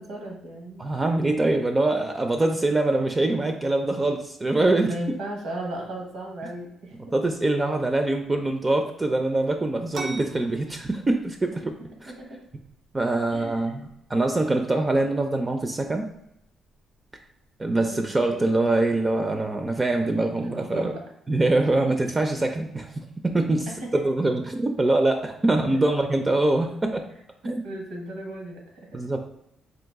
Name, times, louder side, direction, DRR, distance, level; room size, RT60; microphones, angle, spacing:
voice 1, 0.0-0.8 4.8-7.0 12.1-12.4 13.3-13.7 17.9-18.0 18.3-18.5 20.4-21.0 23.7-24.0 25.7-25.8 27.4-29.0, right 1 dB, 85° right, 0 dB, 1.3 m, -35 dB
voice 2, 0.8-4.9 7.1-11.7 12.0-12.1 12.9-16.1 17.6-20.9 21.3-22.9 23.2-23.7 23.9-27.0 27.4-27.6 28.9-29.3, right 2 dB, 25° right, 5 dB, 0.4 m, -24 dB
sound 1, 9.9-19.3, right 3 dB, 55° right, 0.6 m, -46 dB
3.9 x 2.5 x 3.5 m, 0.81 s
cardioid pair, 90°, 0 cm